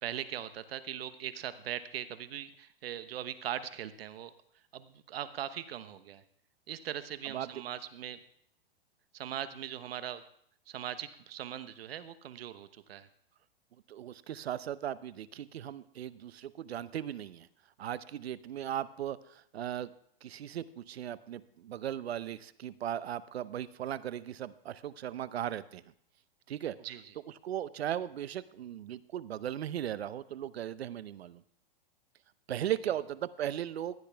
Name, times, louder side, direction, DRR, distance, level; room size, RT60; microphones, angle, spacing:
voice 1, 0.0-4.3 4.7-6.2 6.7-8.2 9.1-10.2 10.7-13.1 26.8-27.0, right 10 dB, 70° right, 12 dB, 1.1 m, -40 dB
voice 2, 7.3-7.6 13.9-17.5 17.8-19.9 20.2-25.8 26.5-26.7 27.4-31.4 32.5-33.9, right 11 dB, 90° right, 16 dB, 0.8 m, -37 dB
15.5 x 10.5 x 3.5 m, 0.66 s
hypercardioid pair, 140°, 30 cm